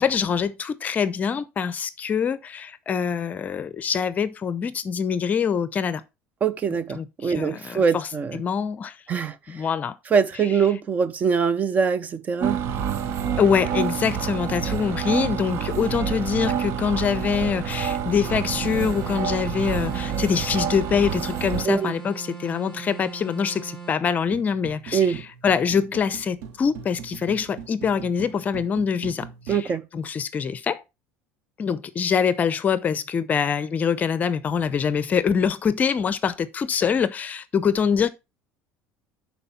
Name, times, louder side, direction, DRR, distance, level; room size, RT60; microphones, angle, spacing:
voice 1, 0.0-6.0 6.9-9.0 9.5-9.9 13.4-30.8 31.6-38.1, left 7 dB, 30° left, 0.6 m, -24 dB
voice 2, 6.4-8.4 9.1-9.3 10.1-12.6 21.6-21.9 24.9-25.2 29.5-29.8, right 6 dB, 30° right, 0.7 m, -23 dB
sound 1, 12.4-21.7, right 8 dB, 50° right, 0.9 m, -28 dB
sound 2, 18.2-24.0, right 6 dB, 5° left, 5.3 m, -39 dB
sound 3, 24.3-29.6, right 7 dB, 80° right, 1.2 m, -41 dB
11.5 x 4.4 x 4.2 m
cardioid pair, 135°, 6 cm